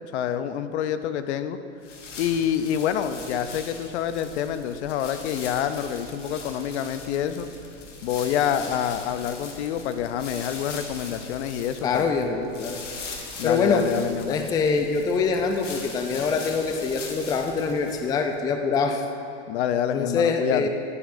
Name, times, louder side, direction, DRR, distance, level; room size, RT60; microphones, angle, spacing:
voice 1, 0.1-1.6 2.2-7.5 8.0-12.1 13.4-14.5 19.5-20.7, left 9 dB, 65° left, 11 dB, 0.6 m, -27 dB
sound 1, 1.8-18.3, left 3 dB, 90° left, 1.2 m, -40 dB
voice 2, 11.8-12.8 13.4-13.9 14.3-19.0 19.9-20.7, left 4 dB, 10° left, 5 dB, 0.3 m, -24 dB
10.5 x 8.9 x 2.6 m, 2.7 s
hypercardioid pair, 110°, 36 cm